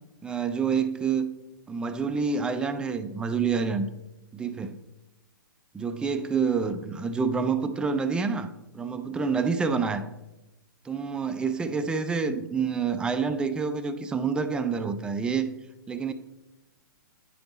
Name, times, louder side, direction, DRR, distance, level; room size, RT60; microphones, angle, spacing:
voice 1, 0.2-1.3 1.7-3.9 4.3-4.8 5.7-10.1 10.8-15.5 15.9-16.1, right 5 dB, 10° right, 0.3 m, -27 dB
9.1 x 3.5 x 4.0 m
hypercardioid pair, 130°, 12 cm